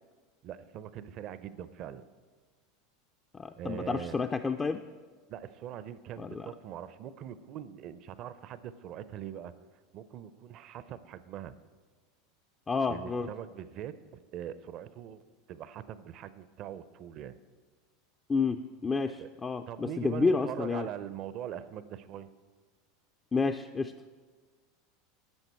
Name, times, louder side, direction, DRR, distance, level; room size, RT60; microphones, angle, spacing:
voice 1, 0.4-2.0 3.6-4.1 5.3-9.5 9.9-11.5 12.9-15.2 15.5-17.4 19.2-19.3 19.7-22.3, right 10 dB, 45° right, 14 dB, 0.5 m, -42 dB
voice 2, 3.3-4.8 6.2-6.5 12.7-13.3 18.3-20.9 23.3-23.9, left 4 dB, 20° left, 7 dB, 0.4 m, -30 dB
11.0 x 7.8 x 4.3 m, 1.4 s
hypercardioid pair, 85°, 0 cm